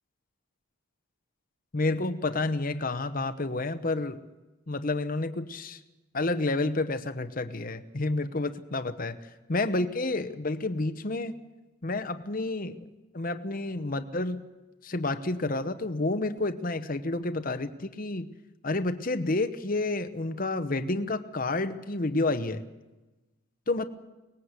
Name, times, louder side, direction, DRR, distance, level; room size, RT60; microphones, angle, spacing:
voice 1, 1.7-4.2 4.7-5.8 6.1-9.1 9.5-11.4 11.8-12.9 13.1-14.4 14.8-18.3 18.6-22.6 23.7-23.9, left 2 dB, 40° left, 9 dB, 0.9 m, -30 dB
23.5 x 19.5 x 8.1 m, 1.1 s
head